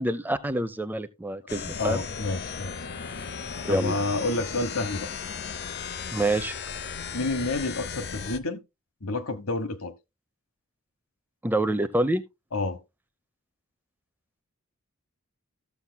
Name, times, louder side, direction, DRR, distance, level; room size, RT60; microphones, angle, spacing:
voice 1, 0.0-2.0 3.7-4.0 6.1-6.5 11.4-12.2, right 1 dB, 10° right, 0.5 m, -27 dB
sound 1, 1.5-8.4, left 6 dB, 45° left, 0.6 m, -36 dB
voice 2, 1.8-2.7 3.7-5.1 7.1-8.6 9.0-9.9 12.5-12.8, left 2 dB, 70° left, 1.1 m, -29 dB
14.5 x 7.1 x 2.2 m
head